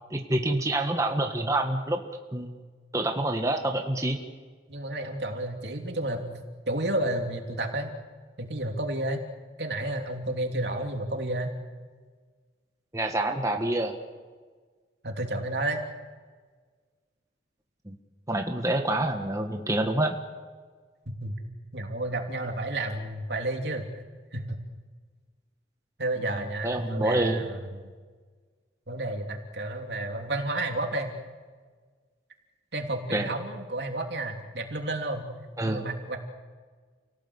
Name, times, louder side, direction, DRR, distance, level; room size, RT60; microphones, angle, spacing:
voice 1, 0.1-2.0 2.3-2.5 2.9-4.2 12.9-14.0 17.9-18.0 18.3-20.2 26.3-27.4 33.1-33.3 35.6-35.8, right 1 dB, 20° right, 3 dB, 1.6 m, -27 dB
voice 2, 4.7-6.2 6.7-7.9 8.4-9.2 9.6-11.5 15.0-15.8 21.2-21.4 21.7-23.8 24.3-24.6 26.0-27.9 28.9-31.2 32.7-35.3 35.6-36.2, right 1 dB, 70° right, 3 dB, 3.2 m, -31 dB
29.5 x 18.0 x 8.3 m, 1.5 s
head